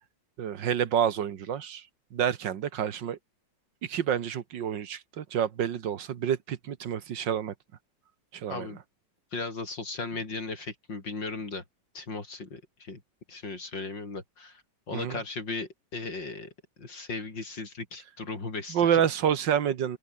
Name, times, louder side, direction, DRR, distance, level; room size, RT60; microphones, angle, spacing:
voice 1, 0.4-1.8 2.1-3.2 3.8-7.5 8.3-8.7 14.9-15.2 18.7-20.0, right 9 dB, 80° right, 2.0 m, -28 dB
voice 2, 8.5-8.8 9.3-11.6 11.9-13.0 13.3-14.6 14.9-16.5 16.8-19.0, left 3 dB, 80° left, 5.4 m, -36 dB
open air
omnidirectional pair, 2.0 m